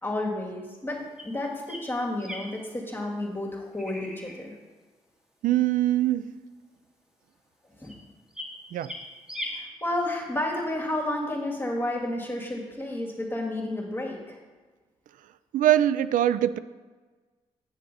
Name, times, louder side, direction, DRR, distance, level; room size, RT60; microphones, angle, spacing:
voice 1, 0.0-4.5 7.8-8.0 9.5-14.4, left 1 dB, 15° left, -2 dB, 2.0 m, -31 dB
sound 1, 1.2-1.3 1.7-1.8 2.2-2.7 3.7-4.5 7.8-7.9 8.3-8.5 8.8-9.0 9.3-9.6, left 1 dB, 5° right, 2.1 m, -38 dB
voice 2, 5.4-6.3 8.7-8.9 15.5-16.6, right 12 dB, 75° right, 14 dB, 0.4 m, -22 dB
8.3 x 6.6 x 4.1 m, 1.3 s
supercardioid pair, 40°, 14 cm